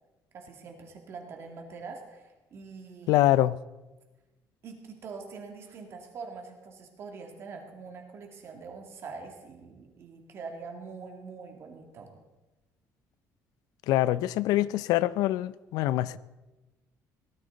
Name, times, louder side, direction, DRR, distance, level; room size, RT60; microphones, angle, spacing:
voice 1, 0.3-3.3 4.6-12.1, right 4 dB, 40° right, 2.2 m, -44 dB
voice 2, 3.1-3.6 13.9-16.2, left 15 dB, 80° left, 0.4 m, -24 dB
17.5 x 12.5 x 4.0 m
cardioid pair, 170°, 6 cm